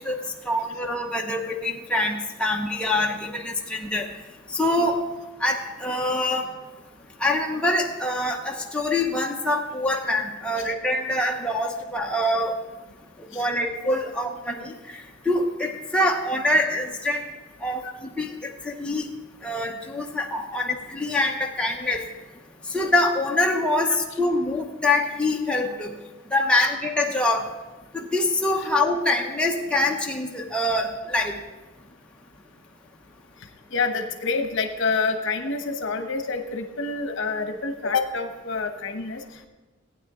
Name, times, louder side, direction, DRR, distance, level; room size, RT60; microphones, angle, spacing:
voice 1, 0.0-4.1 4.5-5.0 5.4-6.5 7.2-12.5 13.3-17.2 17.6-19.1 19.4-22.0 22.7-25.9 26.3-27.4 27.9-31.3, left 1 dB, 5° left, -1 dB, 0.8 m, -25 dB
voice 2, 33.7-39.5, left 4 dB, 60° left, 6 dB, 1.0 m, -27 dB
15.5 x 9.2 x 3.7 m, 1.1 s
head